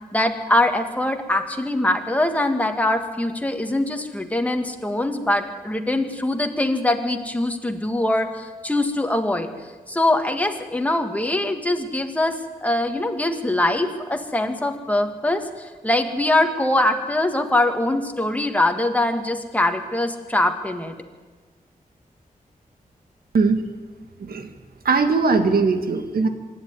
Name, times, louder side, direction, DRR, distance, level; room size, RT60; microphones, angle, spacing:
voice 1, 0.1-9.5 9.9-12.3 12.6-21.0, left 1 dB, 10° left, 5 dB, 1.8 m, -22 dB
voice 2, 24.9-26.3, right 4 dB, 85° right, 7 dB, 1.9 m, -20 dB
25.0 x 11.0 x 9.6 m, 1.4 s
wide cardioid pair, 120°, 15 cm